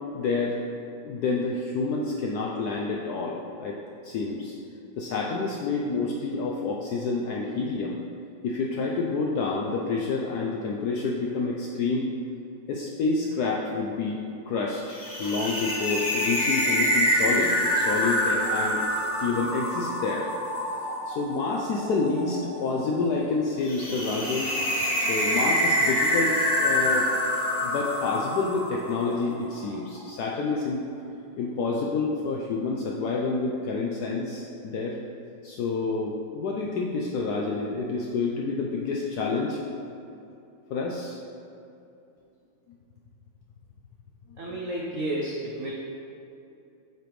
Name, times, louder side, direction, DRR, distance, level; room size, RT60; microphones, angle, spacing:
voice 1, 0.1-0.7 1.0-3.8 4.0-4.6 5.0-8.0 8.4-12.1 12.7-18.8 19.2-20.3 21.1-27.1 27.6-30.8 31.4-35.0 35.4-39.6 40.7-41.2 44.5-44.6, left 4 dB, 80° left, -2 dB, 0.9 m, -28 dB
sound 1, 14.9-29.2, equal, 55° left, 2.1 m, -26 dB
voice 2, 44.4-45.7, right 1 dB, 80° right, -3 dB, 0.7 m, -31 dB
7.6 x 3.1 x 5.0 m, 2.7 s
omnidirectional pair, 2.2 m